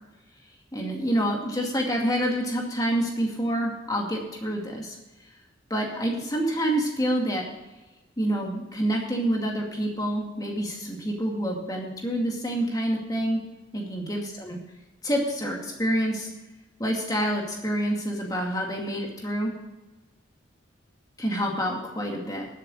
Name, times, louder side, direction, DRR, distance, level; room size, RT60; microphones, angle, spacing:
voice 1, 0.7-5.0 5.7-7.4 8.2-13.4 13.7-14.6 15.0-16.3 16.8-19.5 21.2-22.5, right 1 dB, 20° left, 0 dB, 2.3 m, -27 dB
12.0 x 7.9 x 6.3 m, 1.1 s
head